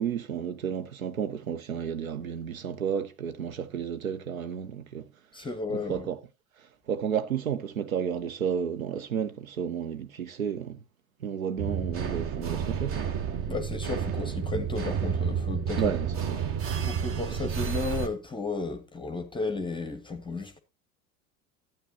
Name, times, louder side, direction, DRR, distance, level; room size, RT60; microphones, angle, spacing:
voice 1, 0.0-5.1 5.4-6.2 6.6-10.8 11.2-13.0 15.8-16.4 17.3-17.6, right 8 dB, 80° right, 0.7 m, -32 dB
voice 2, 5.3-6.1 13.5-15.9 16.9-20.6, left 3 dB, 10° left, 0.8 m, -33 dB
sound 1, 11.6-18.1, right 7 dB, 30° right, 1.0 m, -30 dB
12.5 x 8.8 x 2.7 m
figure-of-eight pair, 75°, 41 cm